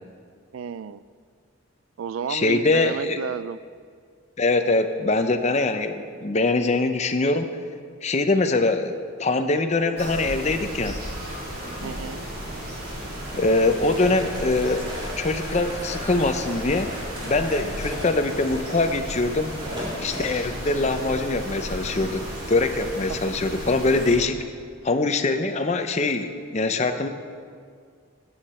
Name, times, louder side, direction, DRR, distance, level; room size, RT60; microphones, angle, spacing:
voice 1, 0.5-1.0 2.0-3.6 11.8-12.2, right 7 dB, 80° right, 16 dB, 0.3 m, -32 dB
voice 2, 2.3-3.2 4.4-7.5 8.0-11.0 13.3-14.9 15.2-17.0 17.2-19.5 20.0-24.4 24.8-27.1, left 2 dB, 35° left, 8 dB, 0.6 m, -23 dB
sound 1, 10.0-24.1, equal, 50° right, 3.6 m, -34 dB
sound 2, 12.8-20.3, equal, 25° right, 2.6 m, -38 dB
13.0 x 9.4 x 4.3 m, 2.1 s
head